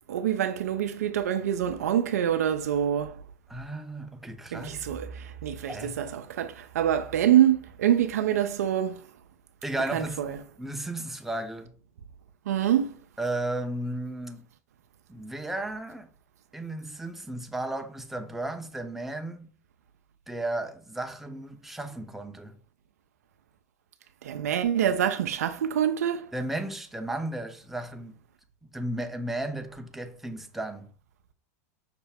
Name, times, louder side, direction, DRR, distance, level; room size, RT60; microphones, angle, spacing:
voice 1, 0.1-3.2 4.5-9.0 9.9-10.3 12.5-12.9 24.2-26.3, right 10 dB, 80° right, 0.4 m, -25 dB
voice 2, 3.5-4.9 5.7-6.0 9.6-10.2 10.6-11.7 13.2-14.5 15.1-16.1 16.5-19.5 20.3-22.5 26.3-28.2 28.7-30.9, right 1 dB, 5° right, 0.6 m, -34 dB
5.7 x 2.0 x 3.3 m
hypercardioid pair, 100°, 8 cm